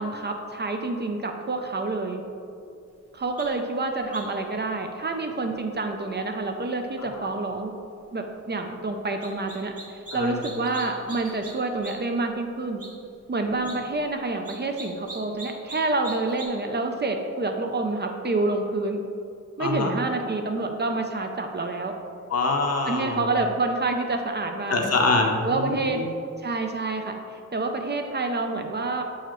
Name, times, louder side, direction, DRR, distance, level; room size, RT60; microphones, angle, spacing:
voice 1, 0.0-2.2 3.1-7.7 8.1-12.8 13.3-19.0 19.6-22.0 22.9-25.0 25.4-26.0 26.4-29.0, right 3 dB, 35° right, 4 dB, 0.5 m, -28 dB
sound 1, 3.4-3.5 4.1-4.4 9.2-10.2 10.4-11.5 11.8-11.9 12.3-12.4 12.8-12.9 13.5-13.8 14.4-16.5, right 3 dB, 50° right, 1.3 m, -40 dB
voice 2, 10.1-10.4 19.6-19.9 22.3-23.3 24.7-26.1, left 3 dB, 55° left, 3 dB, 0.7 m, -25 dB
6.7 x 4.7 x 3.0 m, 2.5 s
wide cardioid pair, 100°, 30 cm